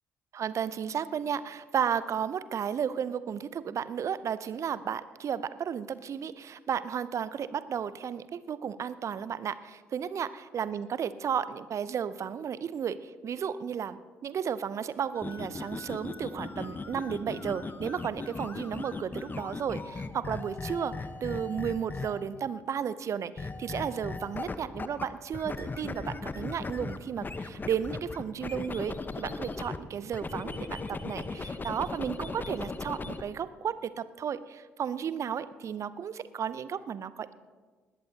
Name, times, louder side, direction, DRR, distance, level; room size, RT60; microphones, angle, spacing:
voice 1, 0.3-37.3, right 8 dB, 50° right, 16 dB, 0.6 m, -33 dB
sound 1, 15.2-22.4 23.4-25.1 25.3-29.8 30.1-33.2, left 3 dB, 30° left, 1.0 m, -38 dB
20.0 x 14.0 x 2.9 m, 1.4 s
figure-of-eight pair, 45°, 7 cm